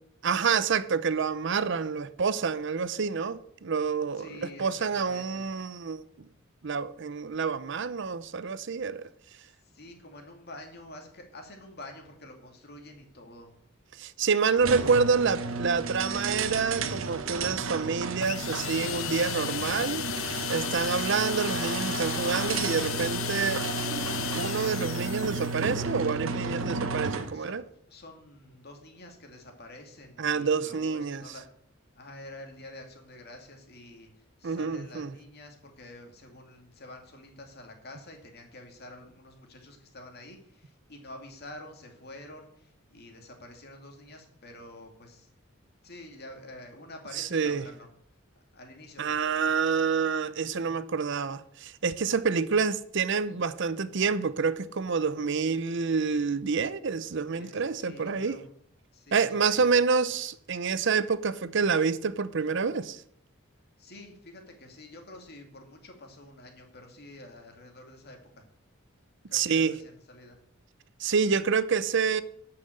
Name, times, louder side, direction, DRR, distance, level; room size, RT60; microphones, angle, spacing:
voice 1, 0.2-6.3 6.6-9.1 14.0-20.0 20.5-23.6 24.3-27.6 30.2-31.2 34.4-35.1 47.1-47.7 49.0-58.4 59.1-63.0 69.3-69.8 71.0-72.2, right 5 dB, 60° right, 0.6 m, -28 dB
voice 2, 4.2-5.5 9.6-13.6 27.3-31.5 31.9-45.3 45.8-47.9 48.5-49.2 57.3-58.4 58.9-59.7 63.8-68.4 69.3-70.4, left 1 dB, 50° left, 2.4 m, -48 dB
sound 1, 14.6-27.4, right 4 dB, 85° right, 1.0 m, -33 dB
sound 2, 18.2-25.8, left 12 dB, 70° left, 0.5 m, -35 dB
11.5 x 5.8 x 7.7 m
head